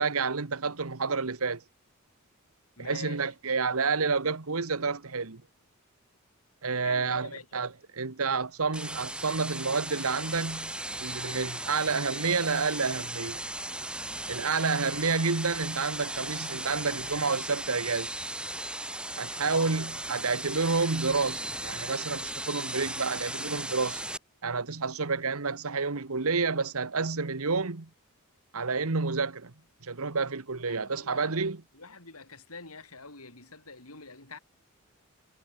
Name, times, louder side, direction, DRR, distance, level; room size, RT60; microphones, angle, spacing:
voice 1, 0.0-1.6 2.8-5.4 6.6-10.7 11.0-13.4 14.3-18.1 19.2-24.0 24.4-27.9 28.5-29.5 29.8-31.6, right 4 dB, 70° right, 1.3 m, -29 dB
voice 2, 2.8-3.3 6.8-7.5 19.5-19.8 30.7-31.3 31.7-34.4, left 4 dB, 80° left, 7.1 m, -45 dB
sound 1, 8.7-24.2, right 1 dB, 5° right, 5.0 m, -37 dB
head